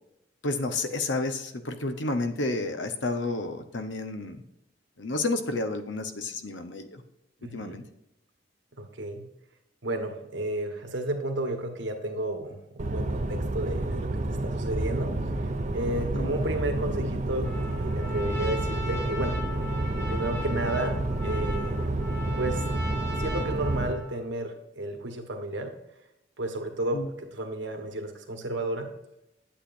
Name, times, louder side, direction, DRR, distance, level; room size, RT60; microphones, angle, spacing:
voice 1, 0.4-4.4 5.0-7.0 7.5-7.8 16.1-16.4 26.9-27.1, left 2 dB, 75° left, 9 dB, 0.9 m, -30 dB
voice 2, 7.4-7.8 8.8-9.2 9.8-15.1 15.4-19.4 20.1-21.0 21.2-21.8 22.4-22.6 23.2-25.7 26.4-28.9, right 1 dB, 75° right, 4 dB, 1.5 m, -32 dB
sound 1, 12.8-23.9, right 2 dB, 40° right, 0.7 m, -29 dB
Trumpet, 17.4-24.2, left 1 dB, 15° left, 1.8 m, -39 dB
8.8 x 8.3 x 2.6 m, 0.87 s
head